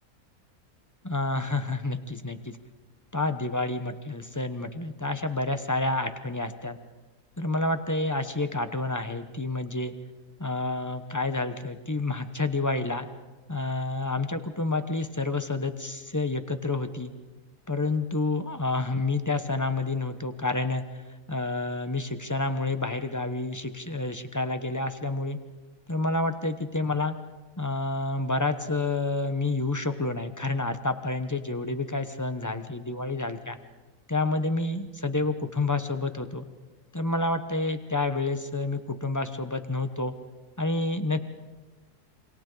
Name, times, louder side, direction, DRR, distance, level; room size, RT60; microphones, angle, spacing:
voice 1, 1.0-2.6 3.1-6.8 7.4-9.9 10.4-13.1 13.5-17.1 17.7-20.8 21.3-25.4 25.9-27.2 27.6-33.6 34.1-36.4 36.9-40.1 40.6-41.2, left 2 dB, 15° left, 8 dB, 0.7 m, -29 dB
27.5 x 25.5 x 4.0 m, 1.2 s
omnidirectional pair, 1.7 m